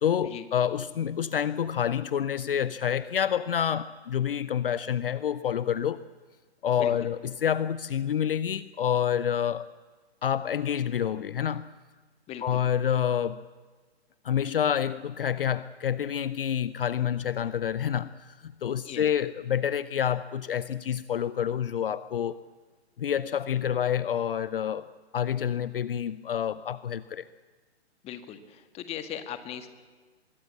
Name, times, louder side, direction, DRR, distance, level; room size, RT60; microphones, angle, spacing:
voice 1, 0.0-6.0 6.6-9.7 10.2-11.7 12.4-13.4 14.2-22.4 23.0-24.8 25.1-27.2, left 9 dB, 55° left, 17 dB, 0.7 m, -28 dB
voice 2, 6.8-7.1 12.3-12.6 18.8-19.1 28.0-29.7, left 10 dB, 20° left, 10 dB, 1.8 m, -39 dB
24.5 x 21.5 x 8.6 m, 1.4 s
figure-of-eight pair, 125°, 33 cm